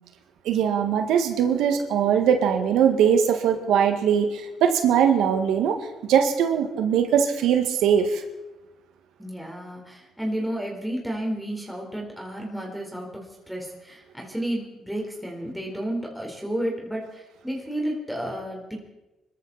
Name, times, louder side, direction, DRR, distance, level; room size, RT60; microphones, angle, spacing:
voice 1, 0.5-5.8 6.1-8.2, right 8 dB, 85° right, 6 dB, 1.8 m, -21 dB
voice 2, 9.2-18.8, right 1 dB, ahead, 0 dB, 4.2 m, -32 dB
24.5 x 14.0 x 4.2 m, 1.0 s
cardioid pair, 90°, 0 cm